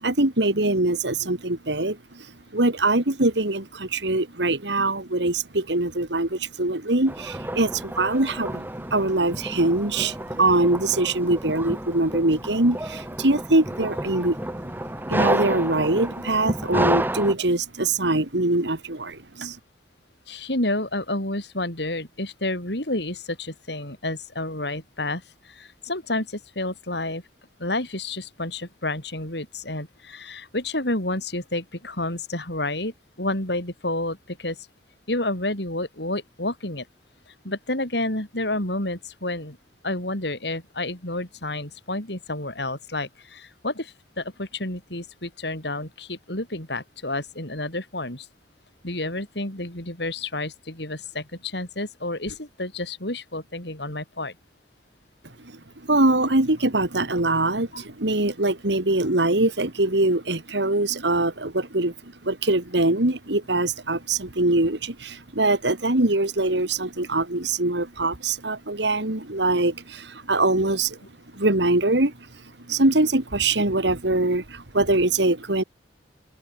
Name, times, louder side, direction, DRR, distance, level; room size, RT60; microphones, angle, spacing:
voice 1, 0.0-2.2 2.5-8.7 8.9-14.4 15.1-19.6 55.9-61.9 62.2-71.0 71.3-72.1 72.7-75.6, right 2 dB, 70° right, 2.7 m, -23 dB
sound 1, 7.1-17.3, right 1 dB, 10° right, 2.4 m, -30 dB
voice 2, 20.3-27.2 27.6-34.7 35.1-36.9 37.3-39.6 39.8-48.3 48.8-54.4 57.7-57.9, left 2 dB, 65° left, 7.0 m, -30 dB
open air
head